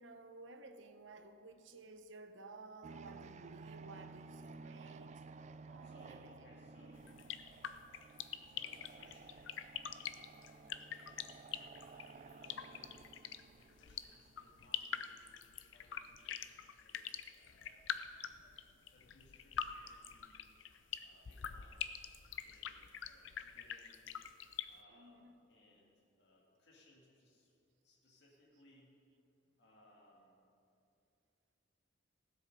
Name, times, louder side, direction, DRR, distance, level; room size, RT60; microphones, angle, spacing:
voice 1, 0.0-5.1 5.7-6.0 17.0-17.2 24.9-25.3, right 3 dB, 80° right, 0.8 m, -55 dB
sound 1, 2.8-14.9, right 4 dB, 40° right, 0.3 m, -55 dB
voice 2, 4.4-4.9 5.8-7.2 8.4-9.5 10.0-10.8 11.8-13.0 13.5-17.9 18.4-18.6 18.9-20.4 21.0-21.9 22.4-24.2 24.7-27.6 27.8-29.0 29.6-30.4, left 1 dB, 60° left, 2.6 m, -67 dB
sound 2, 6.9-24.7, left 9 dB, 80° left, 0.5 m, -44 dB
16.0 x 7.9 x 5.5 m
head